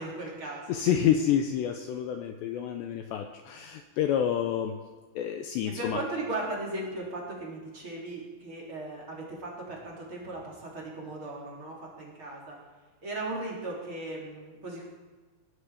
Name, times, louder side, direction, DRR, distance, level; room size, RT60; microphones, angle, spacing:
voice 1, 0.0-0.8 5.7-12.6 13.0-14.9, right 2 dB, 30° right, -4 dB, 3.5 m, -37 dB
voice 2, 0.7-4.7 5.2-6.0, left 9 dB, 80° left, 5 dB, 2.6 m, -28 dB
20.5 x 12.5 x 5.0 m, 1.4 s
omnidirectional pair, 5.9 m